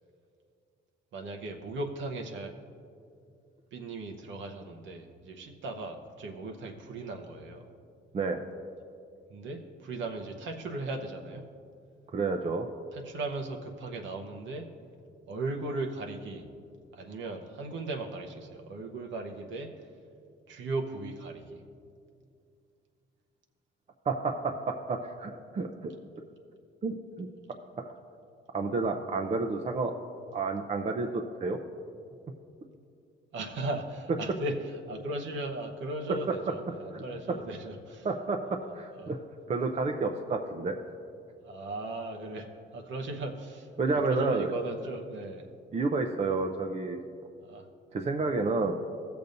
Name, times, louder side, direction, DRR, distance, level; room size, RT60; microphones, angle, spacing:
voice 1, 1.1-2.5 3.7-7.7 9.3-11.4 12.9-14.7 15.3-16.5 16.9-19.9 20.5-21.6 33.3-38.1 39.0-39.1 41.4-45.5 47.4-47.7, right 2 dB, 70° right, 3 dB, 0.9 m, -37 dB
voice 2, 12.1-12.7 24.1-25.9 26.8-27.3 27.8-27.9 28.5-29.9 30.3-31.6 36.9-37.0 38.0-39.2 39.5-40.8 43.8-44.5 45.7-47.0 47.9-48.8, right 3 dB, 35° right, 3 dB, 0.6 m, -30 dB
16.0 x 6.9 x 2.6 m, 2.4 s
cardioid pair, 90°, 20 cm